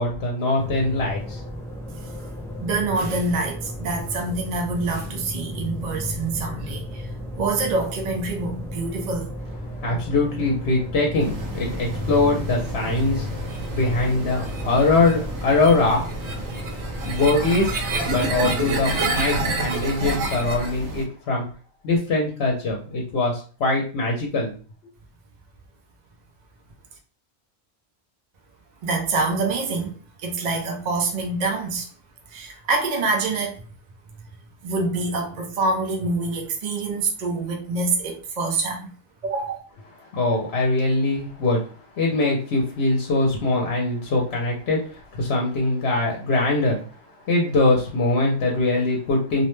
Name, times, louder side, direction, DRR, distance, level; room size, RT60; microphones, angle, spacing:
voice 1, 0.0-1.4 9.7-16.2 17.0-21.4 21.8-24.5 40.1-46.8 47.3-49.4, left 2 dB, 70° left, 0.9 m, -22 dB
sound 1, 0.6-18.9, left 1 dB, 5° left, 0.4 m, -34 dB
voice 2, 2.6-7.1 7.4-9.3 28.8-31.9 32.3-33.6 34.6-38.9 39.2-39.6, right 3 dB, 50° right, 0.6 m, -26 dB
sound 2, 11.2-21.0, right 3 dB, 85° right, 1.0 m, -29 dB
2.6 x 2.1 x 3.0 m
omnidirectional pair, 1.1 m